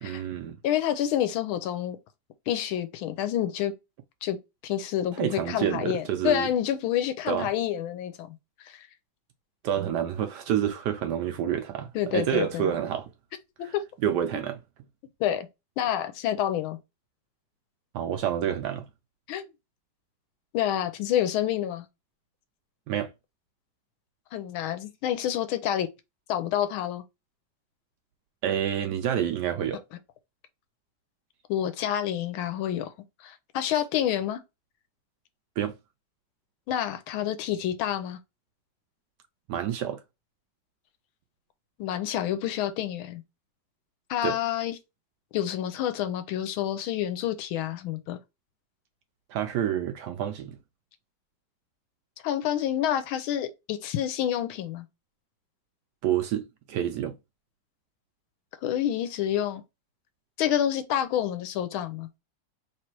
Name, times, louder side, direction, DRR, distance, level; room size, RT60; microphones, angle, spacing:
voice 1, 0.0-0.6 5.1-6.5 7.3-7.5 9.6-13.1 14.0-14.6 17.9-18.9 22.9-23.1 28.4-29.8 35.6-35.7 39.5-40.0 44.2-44.4 49.3-50.6 56.0-57.1, right 10 dB, 75° right, 1.0 m, -28 dB
voice 2, 0.6-2.0 2.5-3.7 4.2-4.4 4.6-8.4 8.6-8.8 11.9-12.7 13.7-13.8 14.3-14.4 15.2-15.5 15.8-16.8 19.3-19.5 20.5-21.8 24.3-25.9 26.3-27.0 31.5-32.9 33.2-34.4 36.7-38.2 41.8-43.2 44.1-44.8 45.3-48.2 52.2-54.9 58.6-59.6 60.4-62.1, left 11 dB, 85° left, 1.5 m, -28 dB
3.3 x 3.2 x 4.4 m
omnidirectional pair, 2.2 m